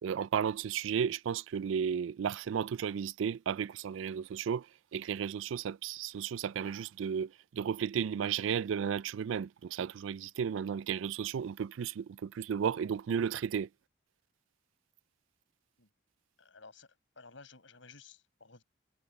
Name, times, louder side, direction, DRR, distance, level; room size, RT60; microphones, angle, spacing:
voice 1, 0.0-13.7, right 7 dB, 85° right, 0.3 m, -34 dB
voice 2, 16.4-18.6, left 4 dB, 80° left, 5.1 m, -55 dB
head